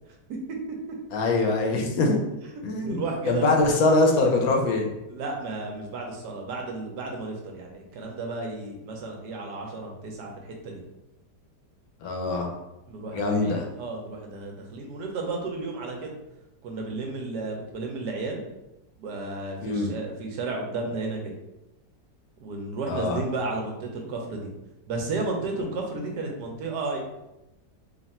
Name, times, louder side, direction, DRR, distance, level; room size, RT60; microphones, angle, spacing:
voice 1, 1.1-2.2 2.6-4.9 12.0-12.5 13.1-13.6 19.6-19.9 22.9-23.2, left 2 dB, 65° left, 1 dB, 1.0 m, -23 dB
voice 2, 2.8-3.8 5.1-10.8 12.9-16.1 16.6-18.4 19.0-21.3 22.4-24.5 24.9-27.0, right 3 dB, 70° right, 1 dB, 1.3 m, -33 dB
3.4 x 2.4 x 4.1 m, 0.94 s
omnidirectional pair, 1.9 m